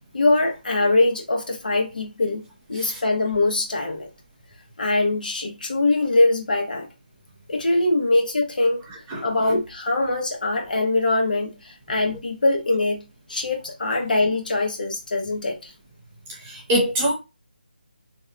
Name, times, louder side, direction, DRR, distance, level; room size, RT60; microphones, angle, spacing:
voice 1, 0.1-4.1 4.8-6.9 7.5-8.8 9.2-15.7, left 2 dB, 60° left, 0.9 m, -22 dB
voice 2, 9.1-9.6 16.4-17.1, equal, 10° right, 0.3 m, -24 dB
2.7 x 2.1 x 2.5 m
figure-of-eight pair, 165°, 5 cm